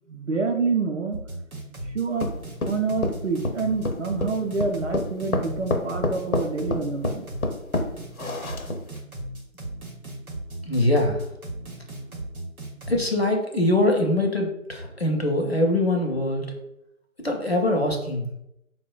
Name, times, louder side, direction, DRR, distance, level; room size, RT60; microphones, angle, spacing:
voice 1, 0.1-1.2 1.9-2.3 2.7-7.3, right 4 dB, 60° right, 2 dB, 0.6 m, -27 dB
sound 1, 1.1-13.1, right 1 dB, 85° right, 0.8 m, -36 dB
sound 2, 2.2-9.0, left 2 dB, 80° left, 0.7 m, -28 dB
voice 2, 10.7-11.2 12.9-16.5 17.2-18.3, left 1 dB, 50° left, 1 dB, 0.5 m, -23 dB
4.2 x 2.1 x 2.3 m, 0.82 s
figure-of-eight pair, 160°, 42 cm